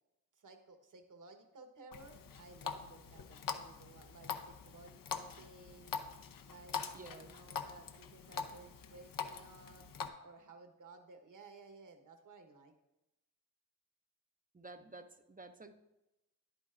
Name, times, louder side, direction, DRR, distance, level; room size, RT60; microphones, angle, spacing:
voice 1, 0.4-5.9 6.4-9.9 10.2-12.7, right 3 dB, 55° right, 6 dB, 1.4 m, -57 dB
Water tap faucet, 1.9-10.1, left 6 dB, 60° left, 0.8 m, -44 dB
voice 2, 6.9-7.3 14.5-15.7, right 2 dB, 20° right, 8 dB, 0.7 m, -52 dB
10.0 x 8.9 x 2.6 m, 0.94 s
supercardioid pair, 50°, 37 cm